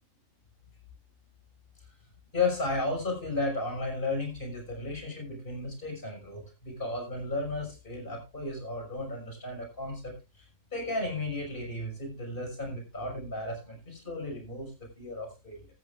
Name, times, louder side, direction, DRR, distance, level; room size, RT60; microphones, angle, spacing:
voice 1, 2.3-10.4 10.7-15.7, left 2 dB, 40° left, 2 dB, 6.2 m, -34 dB
14.5 x 13.5 x 2.4 m, 0.28 s
omnidirectional pair, 1.4 m